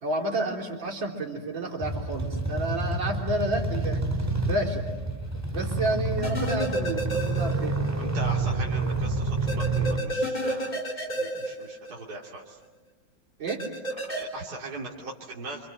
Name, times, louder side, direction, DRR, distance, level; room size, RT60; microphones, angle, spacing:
voice 1, 0.0-4.0 4.5-4.8 5.5-7.8 13.4-13.6, right 2 dB, 70° right, 0 dB, 4.5 m, -30 dB
sound 1, 1.8-10.0, right 2 dB, 10° right, 2.2 m, -28 dB
sound 2, 6.2-7.9 8.2-8.3 9.5-12.3 13.5-14.2, right 1 dB, 20° left, 4.1 m, -31 dB
voice 2, 8.0-12.6 14.0-15.7, right 2 dB, 50° right, -3 dB, 3.1 m, -39 dB
28.0 x 27.0 x 7.8 m, 1.2 s
omnidirectional pair, 2.1 m